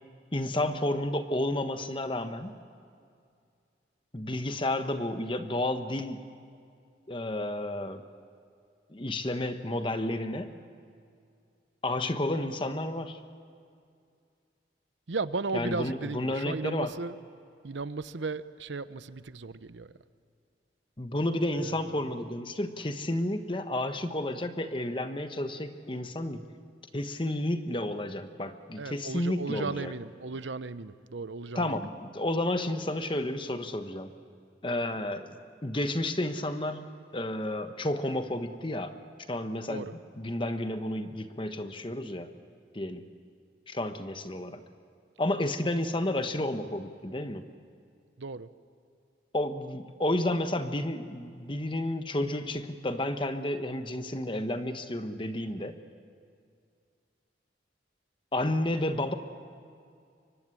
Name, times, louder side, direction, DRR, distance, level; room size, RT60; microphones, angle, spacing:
voice 1, 0.3-2.5 4.1-6.2 7.1-8.0 8.9-10.5 11.8-13.2 15.5-16.9 21.0-26.4 26.9-29.9 31.5-34.1 34.6-35.4 35.6-36.8 37.1-39.0 39.3-39.9 40.2-42.3 42.7-43.0 43.7-44.6 45.2-47.5 49.3-55.7 58.3-59.1, left 1 dB, 30° left, 8 dB, 1.1 m, -31 dB
voice 2, 15.1-17.2 17.6-19.9 21.5-22.1 28.8-31.9 39.7-40.0 48.2-48.5, right 3 dB, 85° right, 14 dB, 0.8 m, -35 dB
24.0 x 24.0 x 9.8 m, 2.3 s
head